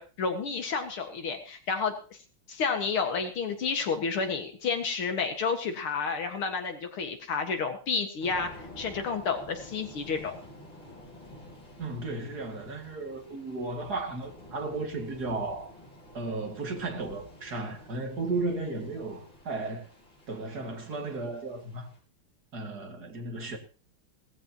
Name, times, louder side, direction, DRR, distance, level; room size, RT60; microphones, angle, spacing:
voice 1, 0.0-1.9 2.5-10.3, left 5 dB, 80° left, 2.6 m, -30 dB
Thunder / Rain, 8.2-22.0, left 1 dB, 60° left, 7.4 m, -50 dB
voice 2, 11.8-15.7 16.1-19.9 20.3-21.9 22.5-23.6, right 3 dB, 50° right, 2.5 m, -34 dB
18.5 x 14.0 x 2.9 m
omnidirectional pair, 2.3 m